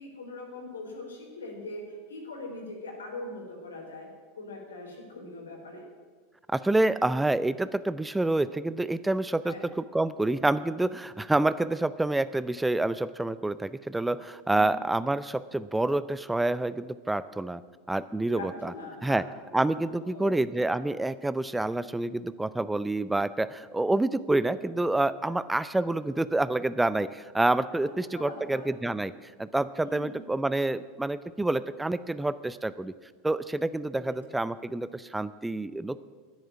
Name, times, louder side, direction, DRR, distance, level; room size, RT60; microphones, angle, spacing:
voice 1, 0.0-4.1 4.4-5.8 9.4-9.6 14.5-14.7 18.3-19.3 19.9-20.4 27.8-28.7 29.8-30.2 33.9-34.2, left 2 dB, 85° left, 1 dB, 3.7 m, -41 dB
voice 2, 6.5-17.6 17.9-18.7 19.0-19.2 19.5-29.1 29.4-32.9 33.2-36.0, right 2 dB, 10° right, 15 dB, 0.5 m, -28 dB
11.0 x 10.5 x 8.7 m, 1.5 s
hypercardioid pair, 90°, 0 cm